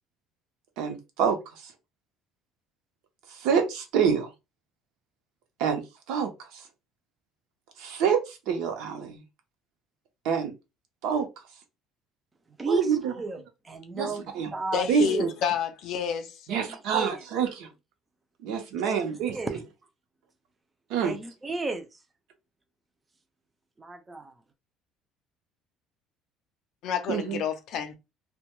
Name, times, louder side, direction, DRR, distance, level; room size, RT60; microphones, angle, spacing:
voice 1, 0.8-1.6 3.3-4.3 5.6-5.8 6.1-6.6 7.8-9.2 10.2-10.5 11.0-11.3 12.7-13.1 13.9-14.5 14.9-15.3 16.5-17.7 18.4-19.3 20.9-21.1 27.1-27.4, right 7 dB, 75° right, 0.6 m, -27 dB
voice 2, 12.5-15.3 16.5-17.2 18.8-19.6 21.0-22.0 23.8-24.4, right 3 dB, 15° right, 0.4 m, -34 dB
voice 3, 14.7-16.5 26.8-28.0, left 8 dB, 55° left, 0.5 m, -29 dB
2.2 x 2.2 x 2.9 m
cardioid pair, 165°, 0 cm